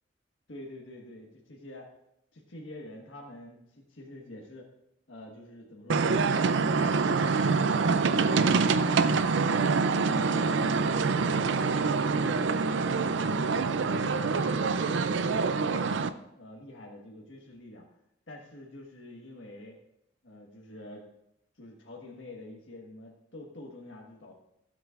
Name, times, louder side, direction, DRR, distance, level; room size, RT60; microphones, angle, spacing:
voice 1, 0.5-1.9 2.3-4.7 5.1-7.9 8.7-10.7 11.2-13.0 13.3-16.0 16.4-17.8 18.3-19.8 20.2-21.1 21.6-24.3, left 1 dB, 80° left, -2 dB, 1.5 m, -47 dB
sound 1, 5.9-16.1, right 4 dB, 70° right, 0.5 m, -25 dB
16.0 x 7.6 x 2.5 m, 0.82 s
head